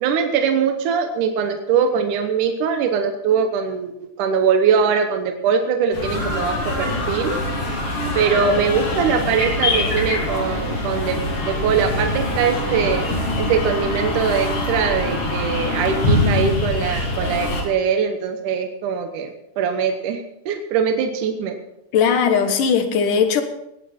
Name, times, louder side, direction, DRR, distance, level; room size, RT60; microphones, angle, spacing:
voice 1, 0.0-3.9 4.2-7.3 8.2-11.2 11.5-13.0 13.4-21.6, right 6 dB, 80° right, 6 dB, 2.6 m, -21 dB
sound 1, 5.9-17.6, left 1 dB, 50° left, 4.0 m, -23 dB
voice 2, 21.9-23.4, left 6 dB, 90° left, 7 dB, 3.0 m, -18 dB
19.0 x 11.0 x 4.3 m, 0.84 s
omnidirectional pair, 3.6 m